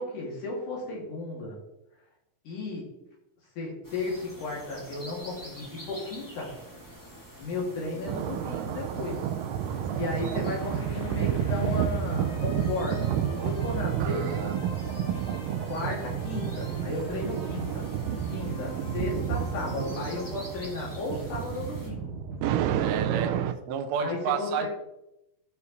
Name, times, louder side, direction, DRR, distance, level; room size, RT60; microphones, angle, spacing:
voice 1, 0.0-1.6 2.5-3.0 3.6-6.5 7.4-9.3 9.9-13.1 13.4-14.6 15.7-17.9 18.3-22.1 24.0-24.7, left 3 dB, 75° left, -2 dB, 3.9 m, -34 dB
sound 1, 3.8-21.9, equal, 10° left, 1.5 m, -47 dB
sound 2, 8.1-22.7, left 3 dB, 55° left, 0.9 m, -45 dB
sound 3, 8.1-23.5, right 10 dB, 90° right, 2.2 m, -30 dB
voice 2, 14.0-14.5 15.6-15.7 22.8-23.3 23.7-24.7, right 7 dB, 70° right, 6 dB, 1.9 m, -31 dB
13.5 x 4.7 x 4.1 m, 0.87 s
omnidirectional pair, 3.6 m